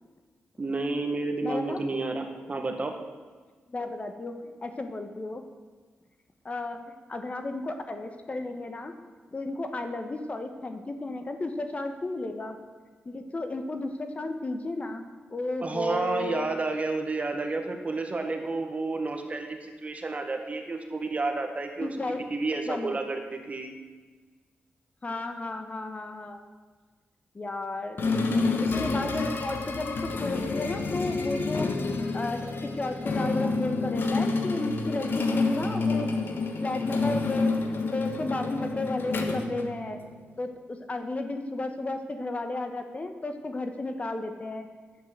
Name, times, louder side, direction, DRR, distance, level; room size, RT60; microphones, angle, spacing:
voice 1, 0.6-2.9 15.6-21.9 22.3-23.7, right 3 dB, 35° right, 4 dB, 1.7 m, -30 dB
voice 2, 1.4-1.8 3.7-5.4 6.4-8.9 9.3-12.6 13.0-15.0 15.3-16.5 21.8-22.2 22.6-23.0 25.0-26.4 27.3-28.0 28.6-31.7 32.1-36.1 36.6-40.0 40.4-44.7, left 2 dB, 35° left, 6 dB, 1.2 m, -33 dB
sound 1, 28.0-40.3, left 3 dB, 60° left, 1.4 m, -28 dB
10.5 x 8.6 x 8.0 m, 1.4 s
cardioid pair, 80°, 4 cm